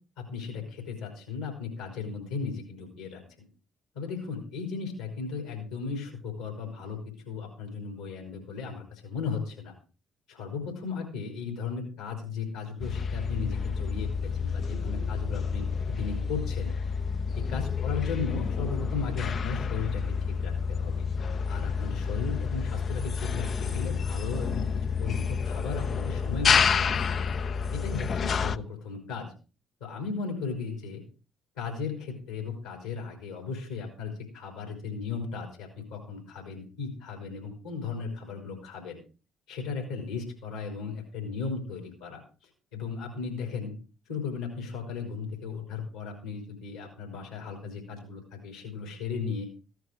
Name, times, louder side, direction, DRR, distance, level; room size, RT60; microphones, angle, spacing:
voice 1, 0.2-3.5 3.9-9.7 10.3-16.7 17.4-20.0 20.4-21.1 21.5-27.2 27.7-29.3 29.8-31.0 31.6-39.0 39.5-42.2 42.7-43.7 44.1-49.5, left 5 dB, 80° left, 1 dB, 4.0 m, -36 dB
sound 1, 12.8-28.6, left 6 dB, 45° left, 0.6 m, -29 dB
14.5 x 9.3 x 4.8 m, 0.34 s
hypercardioid pair, 50°, 0 cm